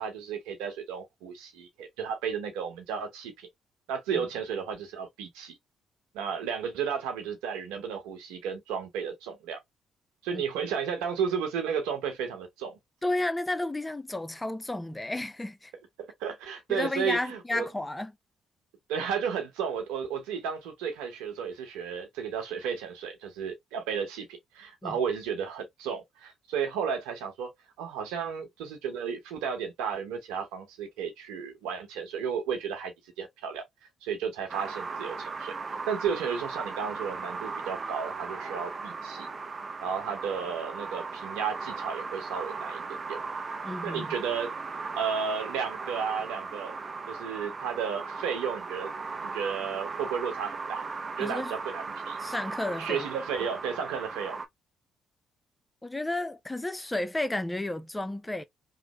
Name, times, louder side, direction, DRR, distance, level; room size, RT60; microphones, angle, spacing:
voice 1, 0.0-3.5 3.9-5.5 6.1-9.6 10.2-12.8 16.0-17.6 18.9-24.3 24.5-27.5 27.8-33.6 34.0-39.3 39.8-42.8 43.1-43.2 43.6-44.5 44.8-46.7 47.1-48.9 49.2-50.8 51.2-52.2 52.8-54.4, right 7 dB, 80° right, 1.0 m, -33 dB
voice 2, 13.0-15.7 16.7-18.1 24.8-25.0 43.6-44.2 51.2-51.5 52.2-53.1 55.8-58.4, left 2 dB, 15° left, 0.5 m, -32 dB
sound 1, 34.5-54.5, right 4 dB, 40° right, 0.5 m, -37 dB
3.2 x 2.1 x 3.0 m
hypercardioid pair, 45°, 0 cm